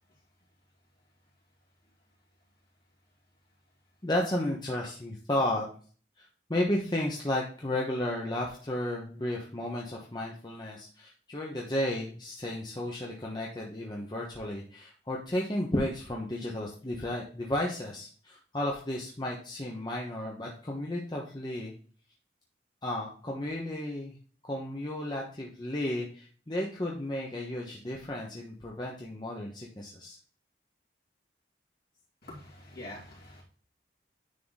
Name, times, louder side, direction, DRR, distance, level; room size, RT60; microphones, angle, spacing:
voice 1, 4.0-5.6 6.2-21.7 22.8-24.2 24.5-30.2, left 1 dB, 25° left, -2 dB, 1.0 m, -33 dB
voice 2, 32.2-33.4, left 1 dB, 55° left, -4 dB, 2.8 m, -45 dB
9.6 x 3.8 x 4.0 m, 0.42 s
head